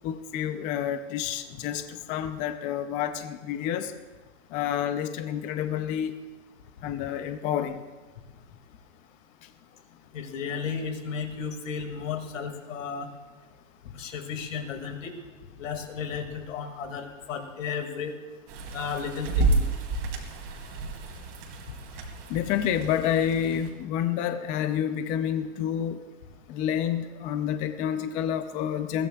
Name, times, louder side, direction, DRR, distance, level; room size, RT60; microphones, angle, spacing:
voice 1, 0.0-3.9 4.5-6.1 6.8-7.8 22.3-26.0 26.5-29.1, left 9 dB, 20° left, 9 dB, 0.4 m, -29 dB
voice 2, 10.1-13.1 13.9-15.1 15.6-18.2 18.7-19.6, left 6 dB, 75° left, 6 dB, 2.2 m, -34 dB
sound 1, 18.5-23.7, right 2 dB, 40° right, 2.7 m, -30 dB
21.0 x 16.0 x 2.3 m, 1.3 s
hypercardioid pair, 135°, 39 cm